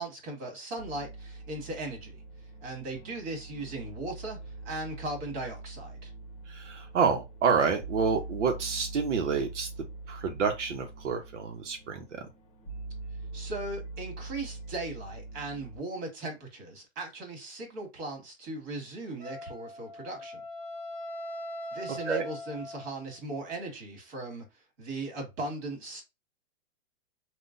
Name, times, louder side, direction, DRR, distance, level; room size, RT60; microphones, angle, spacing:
voice 1, 0.0-2.2 2.6-4.4 4.6-6.1 13.3-20.4 21.7-26.0, right 2 dB, 40° right, 1.8 m, -38 dB
sound 1, 0.8-15.8, right 3 dB, 20° left, 1.1 m, -43 dB
voice 2, 6.5-9.7 10.1-12.3 22.1-22.3, right 5 dB, 80° right, 0.9 m, -28 dB
Wind instrument woodwind instrument, 19.2-23.2, left 1 dB, 5° left, 1.5 m, -41 dB
3.7 x 2.4 x 2.5 m
hypercardioid pair, 155°, 35 cm